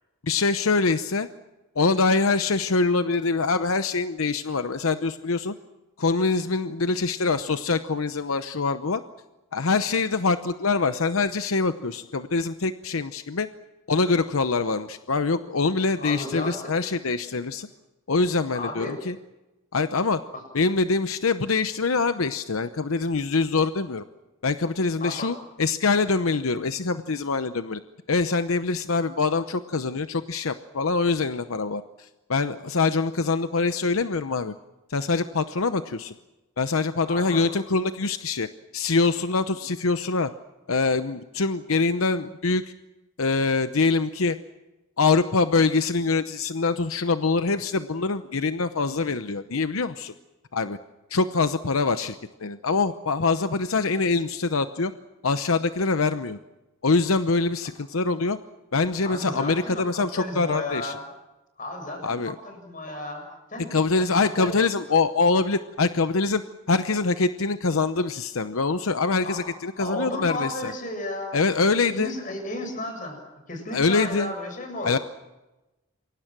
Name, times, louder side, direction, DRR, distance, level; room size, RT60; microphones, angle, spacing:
voice 1, 0.2-1.3 1.8-5.5 6.0-9.0 9.5-13.5 13.9-17.7 18.1-19.1 19.7-20.2 20.5-24.0 24.4-27.8 28.1-31.8 32.3-34.5 34.9-36.1 36.6-38.5 38.7-40.3 40.7-42.6 43.2-44.4 45.0-50.1 50.5-50.8 51.1-54.9 55.2-56.4 56.8-58.4 58.7-60.9 62.0-62.4 63.7-66.4 66.7-70.7 71.3-72.1 73.7-74.3 74.8-75.0, left 4 dB, 85° left, 10 dB, 0.8 m, -24 dB
voice 2, 15.9-16.7 18.5-19.0 20.3-20.4 25.0-25.3 26.8-26.9 37.1-37.4 59.0-61.1 61.6-63.2 63.5-63.7 64.4-64.5 69.2-71.4 71.9-73.2 73.5-74.9, left 1 dB, 40° left, 5 dB, 7.1 m, -33 dB
28.0 x 23.0 x 6.1 m, 1.0 s
head